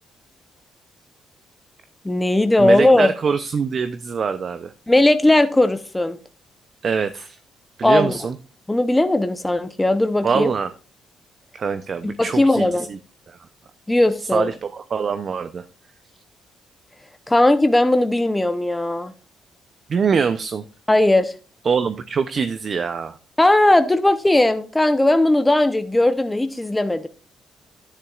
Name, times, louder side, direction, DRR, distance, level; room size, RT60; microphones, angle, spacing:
voice 1, 2.0-3.1 4.9-6.2 7.8-8.2 8.7-10.5 12.0-12.9 13.9-14.5 17.3-19.1 20.9-21.3 23.4-27.1, left 1 dB, 10° left, 0.7 m, -18 dB
voice 2, 2.6-4.7 6.8-7.4 7.8-8.4 10.2-10.7 11.5-13.0 13.3-13.4 14.3-15.6 19.9-20.6 21.6-23.2, right 6 dB, 45° right, 0.5 m, -23 dB
10.5 x 9.8 x 2.4 m
cardioid pair, 90°, 0 cm